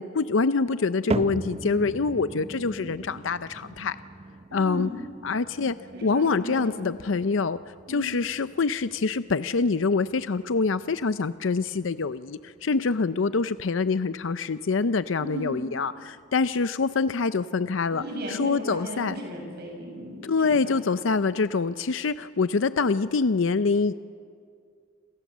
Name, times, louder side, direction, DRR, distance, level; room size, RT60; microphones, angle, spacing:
voice 1, 0.0-4.0 4.5-4.9 5.2-5.8 6.0-18.0 18.3-19.1 20.2-23.9, left 4 dB, 85° left, 13 dB, 0.6 m, -25 dB
sound 1, 1.1-17.4 17.7-18.3 18.9-19.0 19.8-19.9, right 2 dB, 35° right, 0.7 m, -40 dB
voice 2, 4.5-4.9 5.9-6.9 7.9-8.1 15.2-15.6 17.9-20.8, right 1 dB, 60° right, 1 dB, 7.5 m, -36 dB
28.5 x 27.5 x 7.4 m, 2.2 s
head